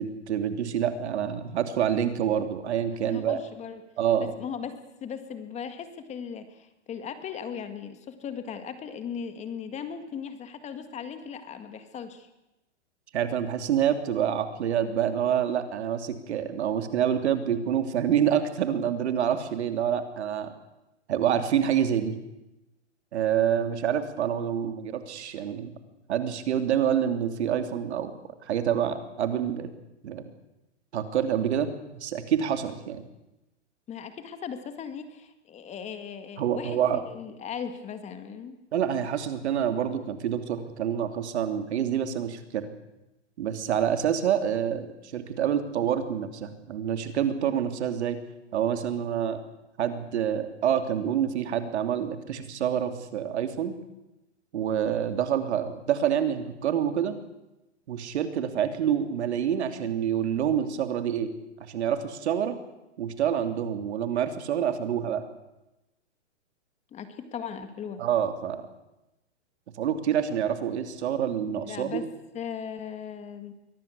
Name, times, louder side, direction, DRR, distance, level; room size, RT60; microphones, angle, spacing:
voice 1, 0.0-3.4 4.0-4.3 13.1-20.5 21.1-22.2 23.1-25.7 26.1-28.1 28.4-29.7 30.0-30.3 30.9-33.0 36.4-37.0 38.7-42.7 43.4-48.2 48.5-49.4 49.8-53.7 54.5-57.2 57.9-61.3 61.6-62.6 63.0-65.2 68.0-68.6 69.8-72.0, right 9 dB, 65° right, 8 dB, 3.0 m, -27 dB
voice 2, 3.0-3.8 4.2-12.3 33.9-36.8 37.1-38.6 66.9-68.0 71.4-72.1 72.3-73.5, left 7 dB, 20° left, 9 dB, 1.8 m, -38 dB
23.5 x 17.5 x 8.3 m, 0.96 s
hypercardioid pair, 140°, 35 cm